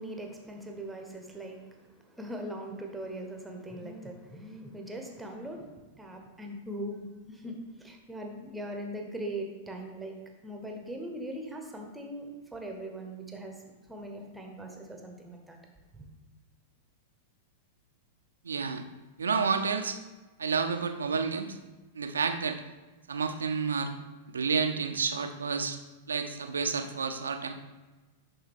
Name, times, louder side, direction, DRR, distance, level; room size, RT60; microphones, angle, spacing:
voice 1, 0.0-10.2 10.4-13.5 13.9-15.6 15.9-16.1, right 1 dB, 5° right, 2 dB, 1.0 m, -40 dB
voice 2, 18.4-18.8 19.2-20.0 20.4-21.6 21.9-22.6 23.1-23.9 24.3-25.8 26.1-27.5, right 5 dB, 75° right, 7 dB, 0.6 m, -30 dB
11.0 x 3.6 x 3.6 m, 1.2 s
figure-of-eight pair, 95°, 0 cm